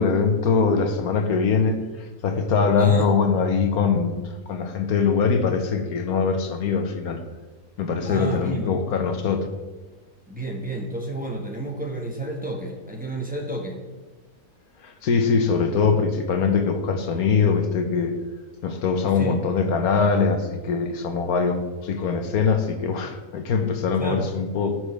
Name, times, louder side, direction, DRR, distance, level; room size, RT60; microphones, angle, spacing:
voice 1, 0.0-7.2 7.8-9.5 14.8-18.1 18.6-24.7, left 5 dB, 75° left, 6 dB, 1.4 m, -22 dB
voice 2, 2.8-3.1 8.0-8.8 10.3-13.8 19.1-19.4 23.9-24.3, right 1 dB, 5° right, -1 dB, 1.4 m, -31 dB
17.5 x 6.1 x 3.4 m, 1.2 s
omnidirectional pair, 1.6 m